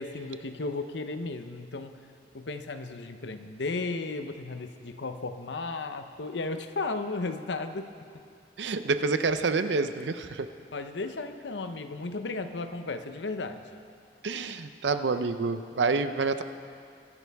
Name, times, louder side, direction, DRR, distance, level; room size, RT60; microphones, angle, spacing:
voice 1, 0.0-1.9 2.3-7.9 10.7-13.8, left 3 dB, 85° left, 8 dB, 0.8 m, -34 dB
voice 2, 8.6-10.5 14.2-16.4, right 4 dB, 85° right, 10 dB, 0.6 m, -28 dB
23.5 x 11.0 x 3.5 m, 2.3 s
head